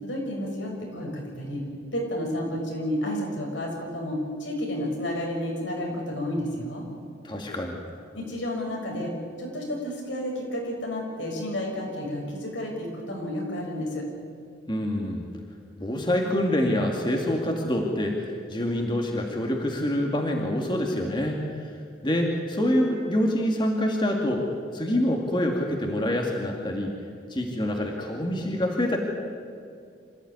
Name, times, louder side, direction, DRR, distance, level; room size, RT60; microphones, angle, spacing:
voice 1, 0.0-1.6 1.9-6.9 8.1-14.0, left 1 dB, 80° left, 0 dB, 6.6 m, -31 dB
voice 2, 7.2-7.8 14.7-15.3 15.8-21.6 22.0-24.5 24.7-26.9 27.3-29.0, left 1 dB, 25° left, 1 dB, 2.4 m, -26 dB
26.5 x 15.0 x 9.8 m, 2.3 s
head